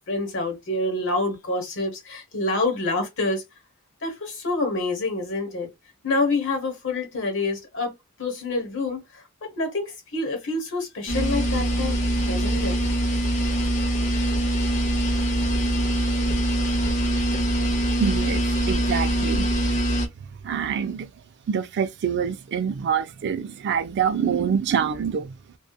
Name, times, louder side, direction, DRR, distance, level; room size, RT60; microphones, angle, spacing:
voice 1, 0.1-3.4 4.0-5.7 6.0-9.2 9.6-12.0 12.3-12.8, left 2 dB, 65° left, 1.1 m, -27 dB
sound 1, 11.1-20.1, right 1 dB, 35° left, 0.7 m, -23 dB
voice 2, 18.0-19.5 20.4-21.1 21.5-25.3, right 7 dB, 55° right, 0.3 m, -25 dB
2.7 x 2.3 x 2.3 m
head